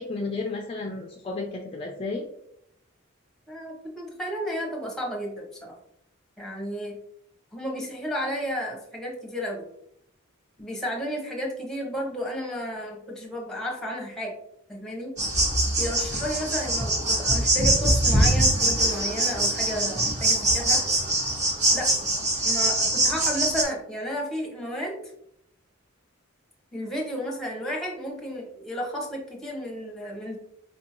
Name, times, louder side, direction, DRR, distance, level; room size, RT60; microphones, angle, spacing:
voice 1, 0.0-2.3, left 3 dB, 25° left, 1 dB, 0.3 m, -32 dB
voice 2, 3.5-5.8 6.4-7.0 7.5-9.6 10.6-14.3 14.7-15.1 15.8-20.8 21.7-21.9 22.4-25.0 26.7-30.4, equal, ahead, -1 dB, 0.8 m, -32 dB
sound 1, 15.2-23.6, right 1 dB, 35° right, 0.9 m, -23 dB
4.4 x 2.6 x 2.8 m, 0.74 s
head